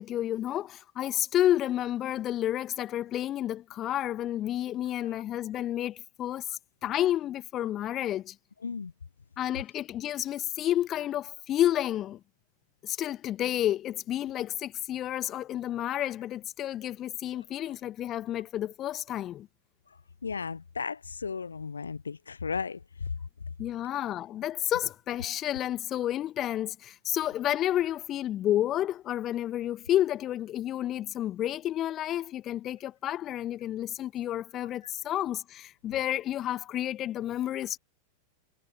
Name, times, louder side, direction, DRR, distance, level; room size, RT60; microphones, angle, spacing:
voice 1, 0.0-8.4 9.4-12.2 12.8-19.5 23.6-37.8, left 12 dB, 30° left, 0.6 m, -30 dB
voice 2, 8.6-8.9 19.9-23.1 23.9-24.0 34.8-34.9, left 5 dB, 75° left, 0.3 m, -35 dB
figure-of-eight pair, 90°, 0 cm